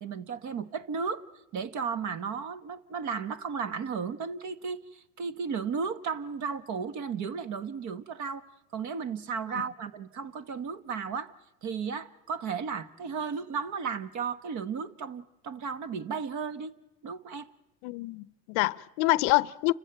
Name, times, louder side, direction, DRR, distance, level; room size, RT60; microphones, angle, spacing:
voice 1, 0.0-1.3 1.5-8.5 8.7-11.3 11.6-16.8 17.0-17.5, right 6 dB, 35° right, 1.2 m, -34 dB
voice 2, 17.8-19.7, left 22 dB, 60° left, 0.7 m, -26 dB
29.0 x 14.5 x 9.0 m
supercardioid pair, 120°, 49 cm